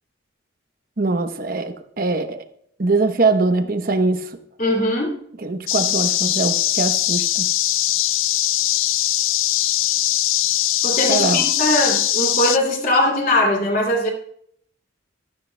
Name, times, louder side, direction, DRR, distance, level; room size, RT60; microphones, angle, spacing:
voice 1, 1.0-2.4 2.8-4.3 5.4-7.5 11.1-11.4, right 3 dB, 45° right, 8 dB, 0.9 m, -22 dB
voice 2, 4.6-5.1 10.8-14.1, left 1 dB, 45° left, 2 dB, 2.5 m, -20 dB
sound 1, 5.7-12.6, left 14 dB, 85° left, 0.4 m, -21 dB
15.5 x 13.0 x 2.2 m, 0.67 s
head